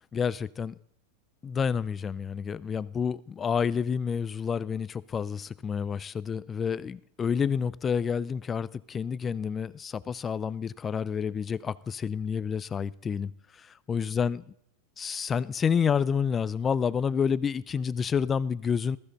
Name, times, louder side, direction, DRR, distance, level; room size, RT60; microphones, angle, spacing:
voice 1, 0.1-0.7 1.4-13.3 13.6-14.4 15.0-19.0, left 6 dB, 20° left, 0.4 m, -29 dB
15.0 x 14.0 x 4.2 m
supercardioid pair, 120°, 0 cm